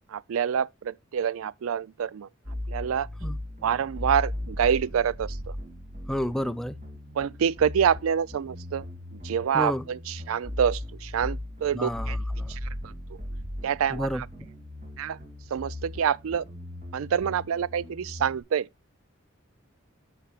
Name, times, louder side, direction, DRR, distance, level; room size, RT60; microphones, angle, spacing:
voice 1, 0.1-2.3 2.7-3.1 3.6-5.5 7.2-8.8 9.1-12.2 12.5-12.9 13.6-14.3 15.0-15.2 15.5-16.4 16.9-18.7, right 8 dB, 80° right, 0.4 m, -27 dB
sound 1, 2.4-18.4, left 1 dB, 40° right, 2.7 m, -37 dB
voice 2, 6.1-6.7 9.5-9.8 11.7-12.5 13.9-14.2, equal, 5° left, 0.4 m, -30 dB
12.5 x 6.2 x 2.4 m
head